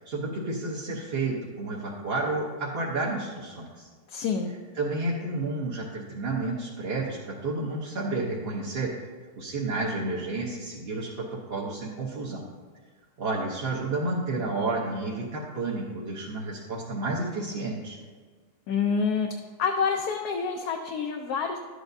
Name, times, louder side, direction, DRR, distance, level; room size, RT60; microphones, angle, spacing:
voice 1, 0.1-3.9 4.7-9.0 9.4-12.4 13.2-18.0, right 2 dB, 45° right, -5 dB, 1.0 m, -31 dB
voice 2, 4.1-4.5 18.7-19.3 19.6-21.6, left 5 dB, 75° left, 2 dB, 1.2 m, -27 dB
11.5 x 8.1 x 2.6 m, 1.5 s
omnidirectional pair, 1.7 m